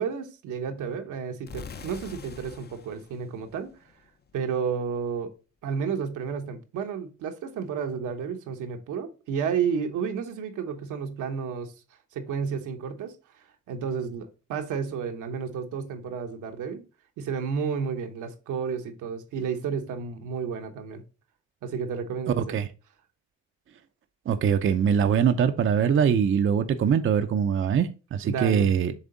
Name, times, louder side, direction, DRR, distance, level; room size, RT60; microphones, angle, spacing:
voice 1, 0.0-3.7 4.3-5.3 5.6-11.7 12.1-13.1 13.7-16.8 17.2-21.0 21.6-22.6 28.2-28.7, right 6 dB, 85° right, 1.1 m, -31 dB
sound 1, 1.5-4.3, left 5 dB, 35° left, 0.6 m, -44 dB
voice 2, 22.4-22.7 24.3-28.9, right 7 dB, 45° right, 0.6 m, -23 dB
7.2 x 3.4 x 3.9 m
cardioid pair, 90°, 30 cm